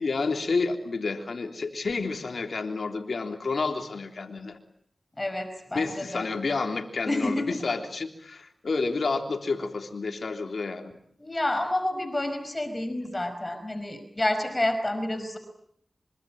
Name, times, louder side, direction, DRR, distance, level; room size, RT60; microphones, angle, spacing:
voice 1, 0.0-4.6 5.7-10.9, left 4 dB, 80° left, 5 dB, 3.5 m, -30 dB
voice 2, 5.2-6.3 7.1-7.6 11.2-15.4, left 1 dB, 35° left, 9 dB, 5.2 m, -29 dB
26.0 x 25.5 x 8.8 m, 0.71 s
cardioid pair, 40°, 0 cm